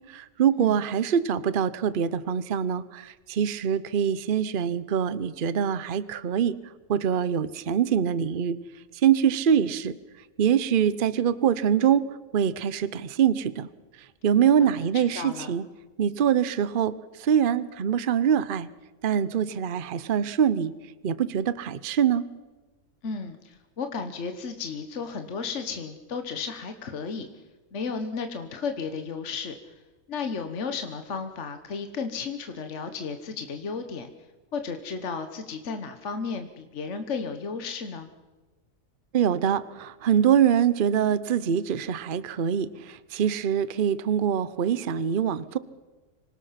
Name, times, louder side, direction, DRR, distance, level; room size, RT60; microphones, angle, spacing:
voice 1, 0.1-6.6 6.9-8.6 9.0-9.9 10.4-12.1 12.3-13.7 14.2-15.6 16.0-16.9 17.2-18.7 19.0-20.7 21.0-22.2 39.1-45.6, right 8 dB, 45° right, 16 dB, 0.8 m, -24 dB
voice 2, 14.6-15.5 23.0-27.3 27.7-29.7 30.1-34.1 34.5-38.1, left 5 dB, 60° left, 7 dB, 1.5 m, -34 dB
26.0 x 18.0 x 5.8 m, 1.2 s
omnidirectional pair, 1.4 m